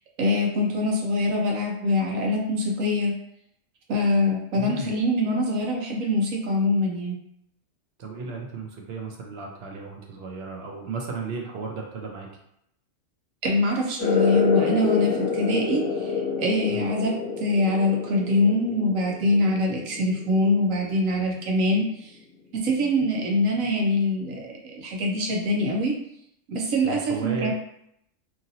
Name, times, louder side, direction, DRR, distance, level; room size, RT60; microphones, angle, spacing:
voice 1, 0.2-3.1 3.9-7.2 13.4-22.1 22.6-24.4 24.7-25.9 26.5-27.5, left 1 dB, 90° right, 0 dB, 1.1 m, -24 dB
voice 2, 4.6-4.9 8.0-12.3 16.7-16.9 26.8-27.5, right 4 dB, 60° right, 0 dB, 0.7 m, -35 dB
sound 1, 14.0-21.1, left 5 dB, 60° left, 0.9 m, -28 dB
2.9 x 2.6 x 2.6 m, 0.76 s
omnidirectional pair, 1.4 m